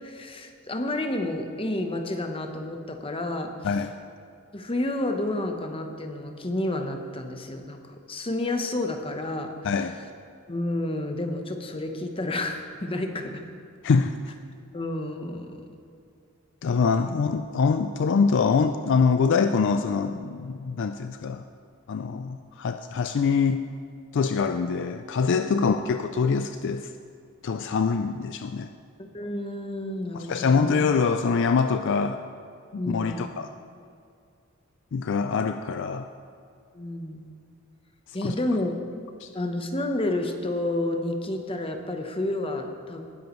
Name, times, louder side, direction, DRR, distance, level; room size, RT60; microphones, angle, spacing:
voice 1, 0.0-3.5 4.5-7.8 8.1-9.5 10.5-13.4 14.7-15.5 25.6-25.7 29.0-30.7 32.8-33.2 36.7-37.2 38.1-38.8 39.3-43.0, left 1 dB, 25° left, 5 dB, 0.9 m, -30 dB
voice 2, 3.6-3.9 9.6-10.0 13.8-14.2 16.6-21.4 21.9-23.7 24.1-26.9 27.4-28.7 30.1-32.2 32.7-33.5 34.9-36.1 38.2-38.3 39.2-39.3, left 5 dB, 55° left, 8 dB, 0.4 m, -24 dB
19.0 x 10.5 x 3.1 m, 2.4 s
head